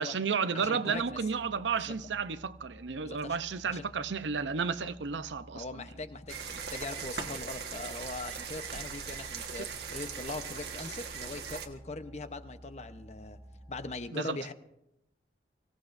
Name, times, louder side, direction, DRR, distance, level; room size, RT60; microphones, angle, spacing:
voice 1, 0.0-5.8 14.1-14.5, right 5 dB, 85° right, 0.7 m, -32 dB
voice 2, 0.5-1.2 1.8-1.9 3.0-3.4 3.7-3.9 5.5-13.4 13.7-14.5, left 3 dB, 40° left, 0.8 m, -41 dB
sound 1, 0.9-14.0, right 1 dB, ahead, 1.4 m, -53 dB
sound 2, 6.3-11.7, right 6 dB, 65° right, 1.4 m, -40 dB
24.5 x 16.5 x 2.6 m
head